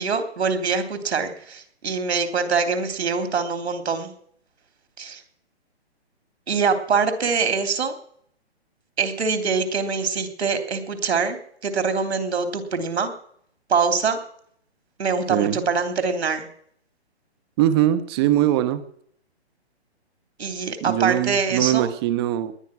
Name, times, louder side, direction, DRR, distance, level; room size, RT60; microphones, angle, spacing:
voice 1, 0.0-4.1 5.0-5.2 6.5-7.9 9.0-11.4 11.6-13.1 13.7-14.2 15.0-16.5 20.4-21.9, right 5 dB, 75° right, 3.2 m, -24 dB
voice 2, 15.3-15.6 17.6-18.8 20.8-22.5, right 12 dB, 25° right, 0.9 m, -21 dB
19.5 x 10.5 x 6.1 m
hypercardioid pair, 150°, 33 cm